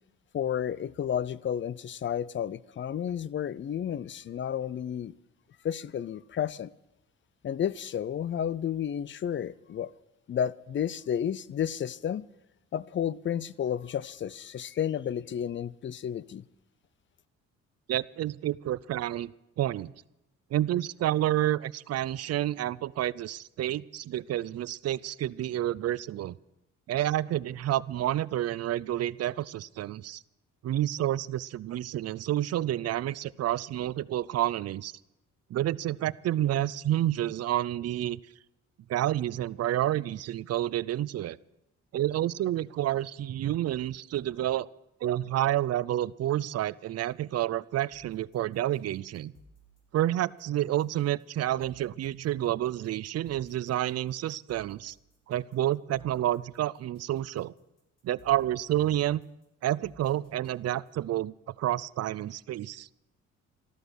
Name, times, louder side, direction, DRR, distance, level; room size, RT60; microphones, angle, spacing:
voice 1, 0.3-5.1 5.6-6.7 7.4-9.9 10.3-12.2 12.7-16.4, left 9 dB, 40° left, 0.5 m, -32 dB
voice 2, 17.9-19.3 19.6-19.9 20.5-26.4 26.9-30.2 30.6-34.9 35.5-38.2 38.9-41.4 41.9-44.7 45.0-49.3 49.9-54.9 55.3-57.5 58.0-59.2 59.6-62.9, right 13 dB, 55° right, 0.5 m, -29 dB
sound 1, 47.9-61.1, left 1 dB, 60° left, 4.8 m, -60 dB
13.5 x 13.0 x 6.3 m
cardioid pair, 90°, 30 cm